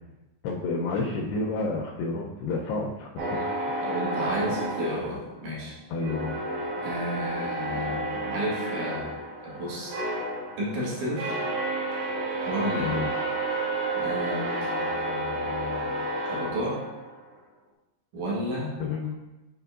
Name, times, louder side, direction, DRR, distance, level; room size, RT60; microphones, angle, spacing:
voice 1, 0.4-3.1 3.7-4.0 5.9-6.4 12.8-13.1 18.8-19.2, left 3 dB, 85° left, -1 dB, 2.4 m, -30 dB
sound 1, 3.2-5.6 6.0-17.2, right 1 dB, 75° right, 3.2 m, -31 dB
voice 2, 3.8-5.8 6.8-9.1 9.4-9.9 10.6-11.4 12.5-12.9 13.9-16.8 18.1-18.7, equal, 60° right, -5 dB, 2.2 m, -32 dB
7.8 x 5.2 x 2.4 m, 1.0 s
omnidirectional pair, 5.4 m